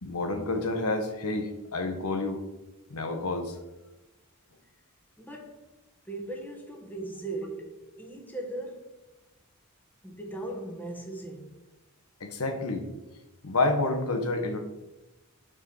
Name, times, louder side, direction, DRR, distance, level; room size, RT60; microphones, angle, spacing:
voice 1, 0.0-2.4 2.9-3.6 12.2-12.9 13.4-14.6, left 2 dB, 85° left, 1.1 m, -29 dB
voice 2, 5.2-5.7 6.0-8.9 10.0-11.5, right 2 dB, 10° left, 1.2 m, -38 dB
8.9 x 4.7 x 4.8 m
head